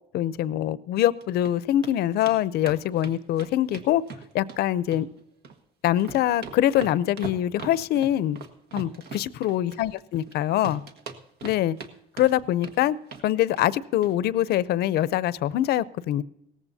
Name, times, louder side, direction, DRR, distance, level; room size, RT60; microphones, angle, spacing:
voice 1, 0.1-4.0 4.3-5.1 5.8-8.4 8.7-10.8 11.4-11.8 12.2-13.0 13.2-16.2, left 12 dB, 70° left, 0.6 m, -24 dB
sound 1, 1.0-1.5 1.8-1.9 2.3-2.4 2.6-4.6 4.9-5.6 5.9-10.3 10.6-11.9 12.2-12.8 13.1-13.3 13.6-13.7 14.0-14.1 14.4-14.5, right 5 dB, 75° right, 1.4 m, -40 dB
17.5 x 14.5 x 2.7 m
cardioid pair, 110°, 17 cm